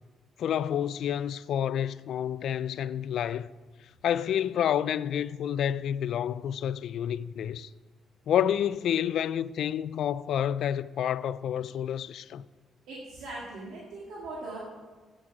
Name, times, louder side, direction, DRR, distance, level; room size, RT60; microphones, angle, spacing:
voice 1, 0.4-3.5 4.0-7.7 8.3-12.4, left 9 dB, 70° left, 0.3 m, -29 dB
voice 2, 12.9-14.6, right 2 dB, 85° right, 2.0 m, -40 dB
8.7 x 8.3 x 6.0 m
cardioid pair, 90°, 0 cm